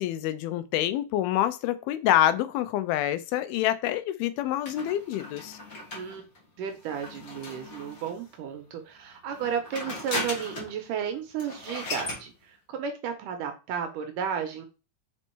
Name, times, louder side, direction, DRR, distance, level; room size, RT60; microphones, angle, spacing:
voice 1, 0.0-5.6, left 12 dB, 85° left, 13 dB, 2.5 m, -26 dB
sound 1, 4.6-8.3 9.3-10.8 11.1-11.2 11.4-12.2, left 2 dB, 45° left, 1.1 m, -37 dB
voice 2, 6.6-14.7, right 8 dB, 75° right, 6 dB, 2.1 m, -33 dB
5.2 x 4.5 x 4.4 m, 0.31 s
omnidirectional pair, 4.3 m